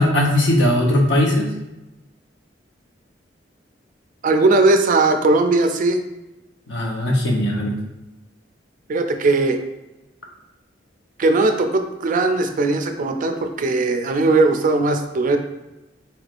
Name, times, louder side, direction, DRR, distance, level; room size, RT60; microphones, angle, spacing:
voice 1, 0.0-1.5 6.7-7.7, left 1 dB, 75° left, -1 dB, 0.9 m, -18 dB
voice 2, 4.2-6.0 8.9-9.6 11.2-15.4, right 2 dB, 45° right, 6 dB, 0.4 m, -18 dB
4.4 x 3.3 x 2.5 m, 1.0 s
head